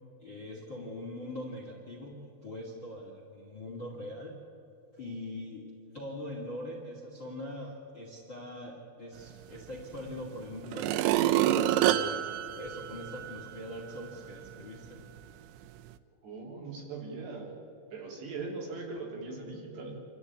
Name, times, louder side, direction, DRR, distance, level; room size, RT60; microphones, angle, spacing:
voice 1, 0.2-2.1 2.4-4.4 4.9-5.6 5.9-11.5 11.8-12.2 12.6-15.0, left 1 dB, 35° left, -1 dB, 2.0 m, -42 dB
sound 1, 9.9-10.0 10.6-13.5 14.0-14.1, right 12 dB, 85° right, 2.3 m, -27 dB
voice 2, 16.2-17.5 17.9-20.0, right 3 dB, 60° right, 0 dB, 5.2 m, -40 dB
27.0 x 13.5 x 9.5 m, 2.9 s
omnidirectional pair, 5.7 m